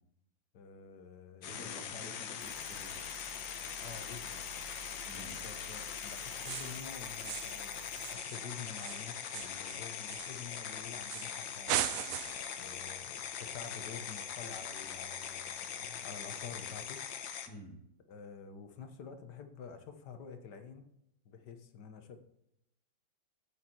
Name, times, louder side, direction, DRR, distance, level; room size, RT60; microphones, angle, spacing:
voice 1, 0.5-2.1 3.8-4.5 5.2-12.0 12.6-17.0 18.1-20.9 21.2-22.2, left 6 dB, 65° left, 7 dB, 1.6 m, -49 dB
sound 1, 1.4-17.5, left 8 dB, 85° left, 1.6 m, -42 dB
voice 2, 1.4-3.0 5.0-5.4 17.5-17.8, left 1 dB, 5° left, -1 dB, 1.8 m, -50 dB
sound 2, 2.4-8.2, right 8 dB, 55° right, 1.3 m, -53 dB
sound 3, 6.4-6.9 7.2-7.6 7.9-10.6 11.1-11.4 11.7-12.5, right 11 dB, 80° right, 0.7 m, -38 dB
9.5 x 8.1 x 4.4 m, 0.78 s
omnidirectional pair, 2.0 m